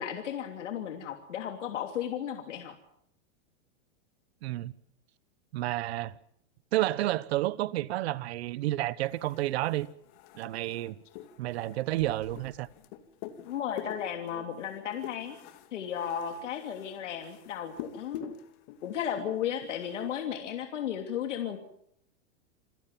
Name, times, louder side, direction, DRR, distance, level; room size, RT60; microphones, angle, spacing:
voice 1, 0.0-2.7 13.4-15.4 15.7-18.2 18.8-21.6, left 9 dB, 85° left, 3.1 m, -34 dB
voice 2, 4.4-4.7 5.5-6.1 6.7-9.9 10.3-11.0 11.4-12.7, right 16 dB, 60° right, 1.2 m, -30 dB
sound 1, 9.0-20.3, left 10 dB, 45° left, 2.5 m, -47 dB
28.0 x 16.5 x 7.5 m
supercardioid pair, 155°, 36 cm